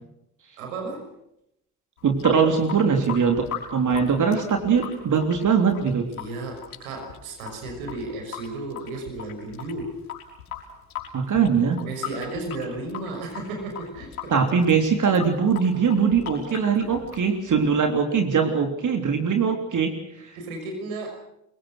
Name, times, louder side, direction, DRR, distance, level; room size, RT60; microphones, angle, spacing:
voice 1, 0.6-1.1 6.1-10.0 11.8-14.4 20.3-21.1, right 2 dB, 75° right, 3 dB, 6.2 m, -34 dB
Water tap faucet / Sink (filling or washing) / Drip, 2.0-17.9, left 9 dB, 80° left, 6.1 m, -39 dB
voice 2, 2.0-3.4 3.7-6.0 11.1-11.8 14.3-19.9, right 6 dB, 45° right, 4 dB, 3.4 m, -21 dB
26.5 x 23.5 x 6.4 m, 0.82 s
figure-of-eight pair, 45°, 42 cm